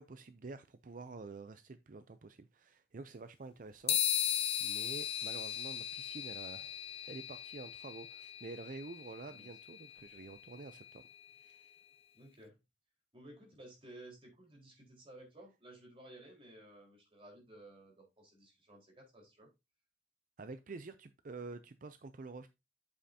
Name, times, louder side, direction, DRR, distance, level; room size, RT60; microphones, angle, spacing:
voice 1, 0.0-11.0 11.4-11.7 20.4-22.5, right 3 dB, 50° right, 0.5 m, -49 dB
sound 1, 3.9-11.5, left 10 dB, 35° left, 0.5 m, -38 dB
voice 2, 12.1-12.6 13.1-19.5, right 1 dB, 30° right, 4.4 m, -55 dB
8.5 x 7.5 x 2.8 m
head